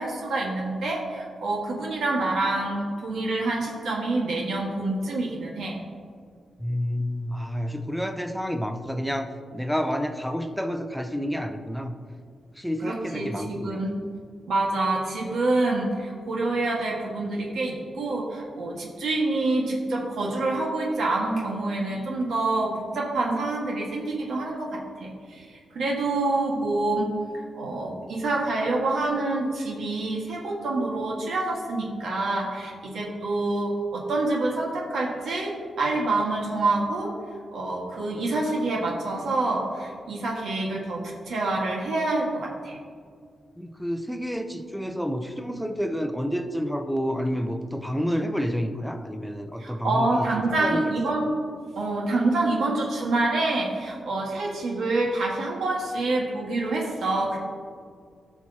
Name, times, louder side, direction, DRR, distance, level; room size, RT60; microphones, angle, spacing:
voice 1, 0.0-5.8 12.8-13.9 14.5-27.1 27.5-37.1 37.5-42.8 49.6-51.3 51.7-57.4, right 2 dB, 80° right, -2 dB, 1.6 m, -27 dB
voice 2, 6.6-11.9 12.6-13.9 43.6-50.3 50.6-50.9, equal, ahead, 7 dB, 0.6 m, -29 dB
17.0 x 6.1 x 2.9 m, 2.1 s
wide cardioid pair, 135°, 0 cm